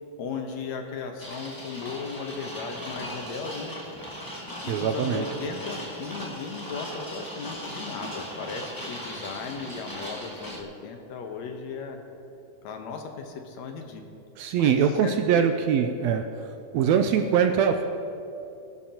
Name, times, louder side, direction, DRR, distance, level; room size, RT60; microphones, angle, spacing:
voice 1, 0.2-3.8 4.6-12.0 12.6-14.0 14.5-14.7 15.0-15.5, left 5 dB, 70° left, 4 dB, 2.2 m, -36 dB
sound 1, 1.2-10.6, equal, 15° left, 0.8 m, -38 dB
voice 2, 4.7-5.2 14.4-16.2 16.7-17.8, right 7 dB, 80° right, 6 dB, 1.6 m, -22 dB
22.0 x 11.5 x 2.9 m, 2.8 s
omnidirectional pair, 3.4 m